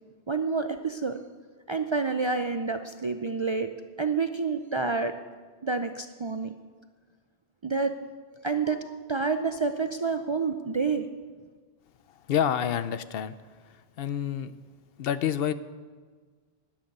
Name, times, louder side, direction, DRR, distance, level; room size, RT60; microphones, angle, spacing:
voice 1, 0.3-1.2 1.7-3.7 4.0-5.1 5.6-6.5 7.6-7.9 8.4-11.1, right 4 dB, 40° right, 8 dB, 0.4 m, -28 dB
voice 2, 12.3-13.4 13.6-14.5 15.0-15.5, left 9 dB, 70° left, 14 dB, 0.8 m, -28 dB
13.0 x 10.0 x 5.4 m, 1.5 s
omnidirectional pair, 1.1 m